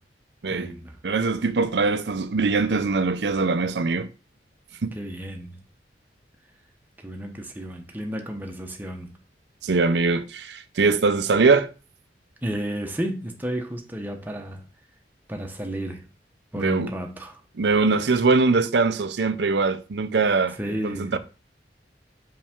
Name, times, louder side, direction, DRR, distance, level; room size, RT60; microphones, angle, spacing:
voice 1, 0.5-1.0 4.9-5.6 7.0-9.2 12.4-14.7 15.3-16.1 16.5-17.4 20.6-21.2, right 1 dB, 10° right, 1.0 m, -32 dB
voice 2, 1.0-4.1 4.8-4.9 9.6-11.7 16.5-16.9 17.5-21.2, right 4 dB, 75° right, 0.6 m, -22 dB
5.5 x 5.4 x 3.6 m
head